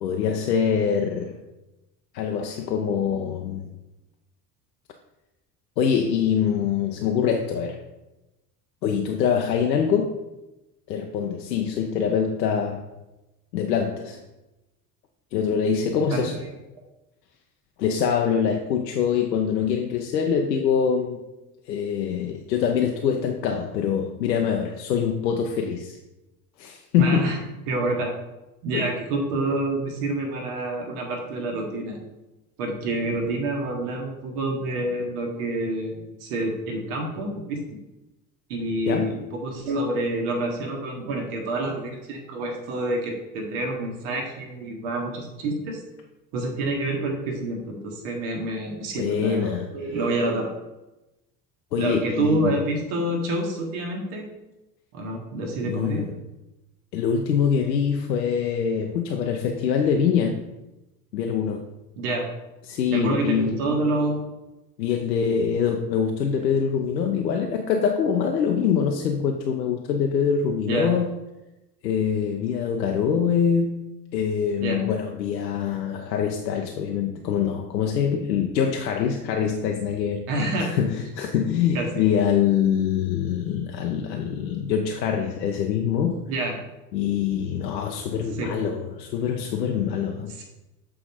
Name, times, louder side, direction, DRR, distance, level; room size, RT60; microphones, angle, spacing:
voice 1, 0.0-1.4 2.1-3.7 5.8-7.8 8.8-10.2 10.9-12.9 13.5-14.2 15.3-16.4 17.8-21.2 21.7-26.0 26.6-27.3 28.7-28.9 38.9-39.1 48.9-49.7 51.7-52.6 55.7-56.1 56.9-60.4 61.1-61.7 62.7-63.6 64.8-71.1 71.8-73.9 74.1-80.3 80.6-86.3 86.9-90.4, left 7 dB, 80° left, 3 dB, 0.6 m, -24 dB
voice 2, 16.1-16.5 27.0-27.4 27.7-28.1 28.6-32.0 32.6-37.6 38.5-45.8 46.3-50.5 51.8-54.2 54.9-56.1 62.0-62.3 62.9-64.2 70.7-70.9 74.6-74.8 80.3-80.7 81.7-82.1 86.3-86.5 88.3-88.5 90.4-90.5, right 2 dB, 65° right, 1 dB, 1.3 m, -27 dB
7.6 x 3.9 x 4.2 m, 1.0 s
figure-of-eight pair, 60°, 50 cm